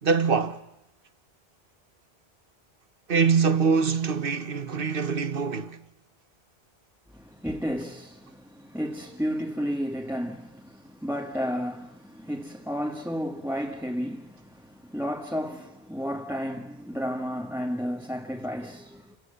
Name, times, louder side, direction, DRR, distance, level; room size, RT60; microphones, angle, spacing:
voice 1, 0.0-0.6 3.1-5.8, right 5 dB, 55° right, 1.4 m, -24 dB
voice 2, 7.1-19.2, equal, ahead, 1.6 m, -32 dB
29.0 x 25.5 x 8.1 m
omnidirectional pair, 1.1 m